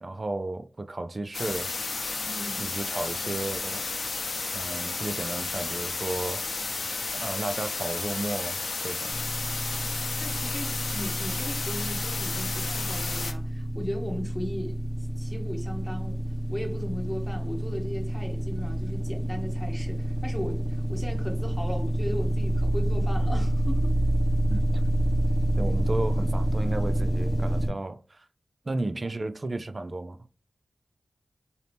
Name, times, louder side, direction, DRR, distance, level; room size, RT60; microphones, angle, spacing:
voice 1, 0.0-1.7 2.6-3.8 4.5-6.4 7.1-9.1 24.5-24.8 25.6-28.2 28.6-30.2, right 2 dB, 40° right, 0.4 m, -33 dB
sound 1, 1.3-13.3, left 3 dB, 75° left, 0.7 m, -32 dB
voice 2, 2.3-2.7 10.2-16.2 16.5-24.0, left 1 dB, 15° left, 1.0 m, -37 dB
sound 2, 9.1-27.7, right 1 dB, 65° right, 1.1 m, -28 dB
4.1 x 2.8 x 3.3 m
wide cardioid pair, 80°, 0 cm